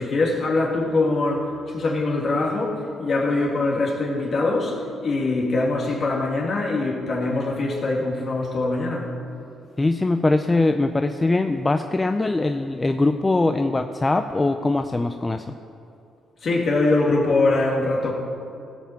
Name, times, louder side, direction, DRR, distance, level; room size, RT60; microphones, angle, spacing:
voice 1, 0.0-4.8 5.0-9.1 16.4-18.1, left 2 dB, 50° left, -2 dB, 2.8 m, -23 dB
voice 2, 9.8-15.5, left 2 dB, 20° left, 7 dB, 0.5 m, -22 dB
16.0 x 5.8 x 7.5 m, 2.7 s
cardioid pair, 90°, 0 cm